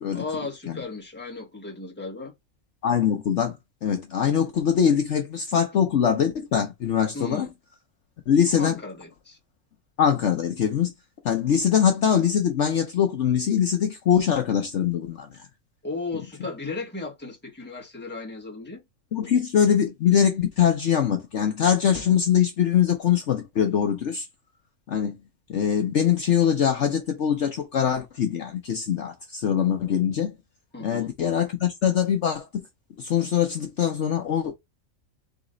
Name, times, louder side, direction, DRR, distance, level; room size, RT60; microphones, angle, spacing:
voice 1, 0.1-2.3 7.1-7.5 8.6-9.4 15.8-18.8 30.7-31.1, left 3 dB, 10° left, 1.3 m, -35 dB
voice 2, 2.8-7.5 8.3-8.8 10.0-10.9 11.2-15.5 19.1-24.3 24.9-25.2 25.5-30.4 30.8-32.7 33.0-34.5, left 8 dB, 60° left, 1.0 m, -23 dB
4.0 x 3.0 x 3.8 m
omnidirectional pair, 1.5 m